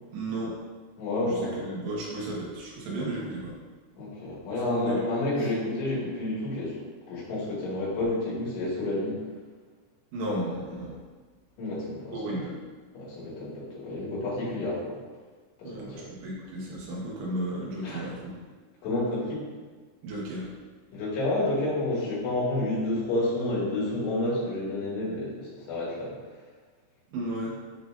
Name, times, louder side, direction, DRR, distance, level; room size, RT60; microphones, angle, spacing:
voice 1, 0.1-0.6 1.3-3.6 4.7-5.0 5.4-5.5 10.1-11.0 12.1-12.5 15.6-18.3 20.0-20.5 27.1-27.6, right 1 dB, 90° right, -4 dB, 3.6 m, -34 dB
voice 2, 1.0-1.5 4.0-6.8 7.1-9.2 11.6-12.4 12.9-15.0 15.6-16.0 17.8-18.1 18.8-19.4 20.9-26.1, left 2 dB, 75° left, -8 dB, 4.0 m, -30 dB
11.0 x 3.9 x 2.5 m, 1.4 s
omnidirectional pair, 5.0 m